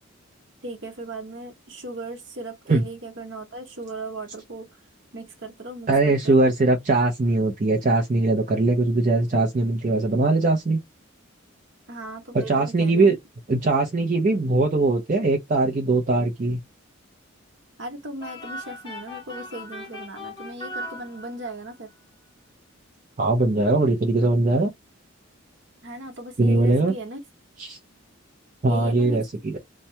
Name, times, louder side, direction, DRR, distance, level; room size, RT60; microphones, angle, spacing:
voice 1, 0.6-4.7 5.1-6.4 11.9-13.1 17.8-21.9 25.8-27.2 28.6-29.2, right 1 dB, 60° right, 1.0 m, -37 dB
voice 2, 5.9-10.8 12.3-13.2 13.5-16.6 23.2-24.7 26.4-26.9 27.6-27.8 28.6-29.6, right 2 dB, 40° right, 0.5 m, -21 dB
sound 1, 18.2-21.7, left 1 dB, 20° left, 0.8 m, -38 dB
2.7 x 2.2 x 3.1 m
head